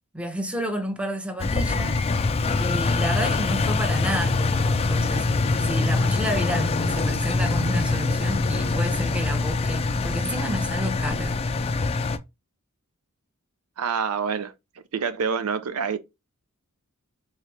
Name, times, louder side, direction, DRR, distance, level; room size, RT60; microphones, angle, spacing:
voice 1, 0.1-2.0 2.6-5.3 5.6-11.4, equal, 5° right, 0.7 m, -30 dB
Engine, 1.4-12.2, left 3 dB, 25° left, 0.3 m, -24 dB
voice 2, 13.8-14.5 14.9-16.0, right 6 dB, 80° right, 0.5 m, -26 dB
3.6 x 3.2 x 3.1 m
head